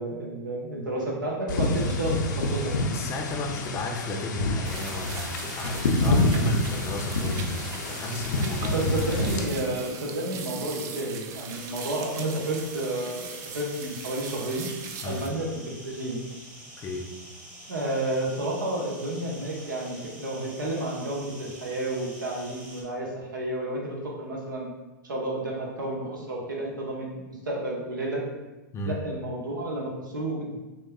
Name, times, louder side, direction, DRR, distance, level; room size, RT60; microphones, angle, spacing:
voice 1, 0.0-3.0 8.7-14.7 15.0-16.2 17.7-24.7 25.1-28.2 28.8-30.6, right 1 dB, 85° right, -2 dB, 1.0 m, -31 dB
sound 1, 1.5-9.4, left 2 dB, 70° left, 0.6 m, -27 dB
voice 2, 2.9-8.9 15.0-15.2 16.8-17.1 28.7-29.0, left 2 dB, 25° left, 1 dB, 0.6 m, -33 dB
sound 2, 4.6-15.3, right 6 dB, 30° right, 0.4 m, -40 dB
sound 3, 11.5-22.8, right 1 dB, 10° right, 0.9 m, -46 dB
6.2 x 2.3 x 2.3 m, 1.1 s
hypercardioid pair, 110°, 10 cm